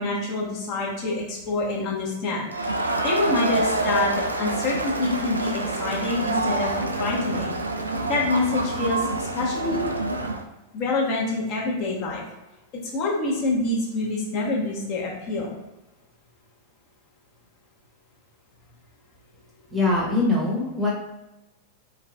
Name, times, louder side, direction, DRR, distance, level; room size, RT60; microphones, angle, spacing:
voice 1, 0.0-2.7 3.0-4.1 4.4-6.7 7.0-7.5 8.1-9.8 10.7-12.2 12.9-15.5, left 2 dB, 40° left, -4 dB, 1.1 m, -26 dB
Crowd, 2.5-10.4, right 2 dB, 80° right, 0.3 m, -27 dB
voice 2, 19.7-20.9, left 2 dB, 10° right, -4 dB, 1.0 m, -22 dB
3.9 x 3.1 x 2.3 m, 0.99 s
figure-of-eight pair, 90°, 0 cm